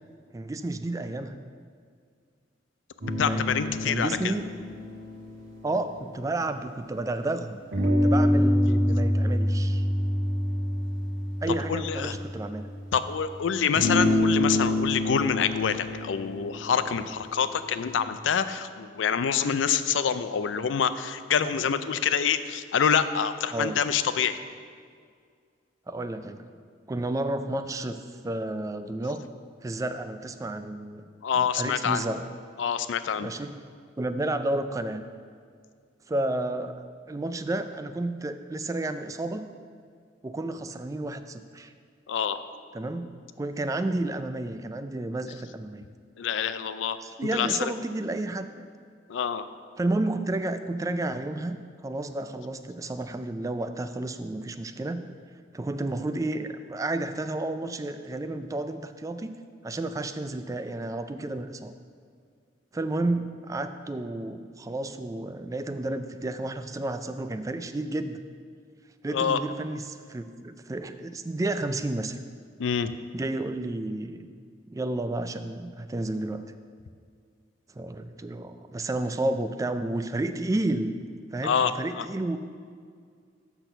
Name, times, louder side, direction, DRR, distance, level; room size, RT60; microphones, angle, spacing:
voice 1, 0.3-1.3 3.3-3.5 3.9-4.4 5.6-9.8 11.4-12.7 23.5-23.8 25.9-26.4 26.9-29.2 29.6-31.0 31.3-32.3 33.2-33.6 34.0-35.0 36.1-39.5 40.2-41.7 42.7-45.9 47.0-48.7 49.8-51.6 51.8-55.0 55.5-59.3 59.6-61.7 62.7-68.2 69.0-72.2 73.1-74.3 74.7-76.4 77.8-80.9 81.3-82.4, right 2 dB, 20° right, 10 dB, 0.3 m, -31 dB
sound 1, 3.0-6.9 7.7-12.8 13.7-17.9, left 1 dB, 90° right, 1.3 m, -27 dB
voice 2, 3.2-4.3 11.7-12.2 12.9-24.4 31.2-32.0 32.6-33.3 42.1-42.4 46.2-47.0 47.3-47.7 49.1-49.4 69.1-69.4 72.6-72.9 81.4-82.1, left 7 dB, 90° left, 12 dB, 0.4 m, -26 dB
6.2 x 6.0 x 6.7 m, 2.1 s
head